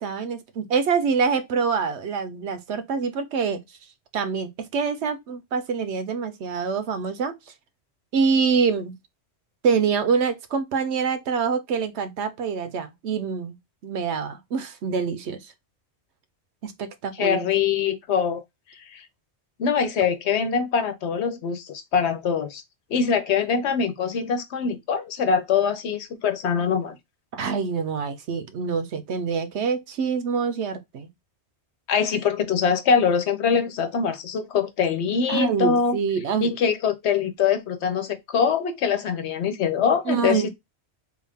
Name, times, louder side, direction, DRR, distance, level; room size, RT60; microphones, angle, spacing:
voice 1, 0.0-3.6 4.1-7.3 8.1-8.9 9.6-13.6 13.8-15.4 16.6-17.5 27.3-31.1 35.3-36.5 40.1-40.5, right 5 dB, 80° right, 1.0 m, -25 dB
voice 2, 17.2-18.4 18.9-19.0 19.6-22.6 22.9-27.0 31.9-36.0 36.4-40.5, left 6 dB, 80° left, 1.0 m, -23 dB
3.5 x 2.4 x 3.4 m
omnidirectional pair, 1.1 m